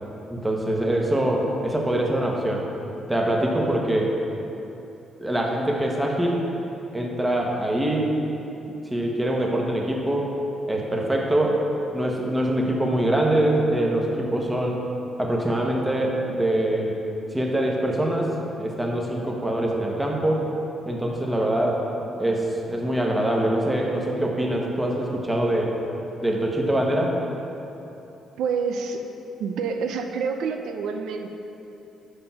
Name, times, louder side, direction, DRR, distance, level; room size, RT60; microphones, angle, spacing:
voice 1, 0.3-2.6 3.1-4.2 5.2-6.5 6.9-8.1 8.9-10.3 10.7-11.6 11.9-14.8 15.2-17.0 17.3-20.5 20.8-21.8 22.2-25.7 26.2-27.2, right 1 dB, 10° right, -1 dB, 1.2 m, -24 dB
voice 2, 28.4-29.0 29.4-31.4, right 5 dB, 85° right, 5 dB, 0.4 m, -27 dB
7.2 x 5.2 x 5.6 m, 3.0 s
cardioid pair, 90°, 0 cm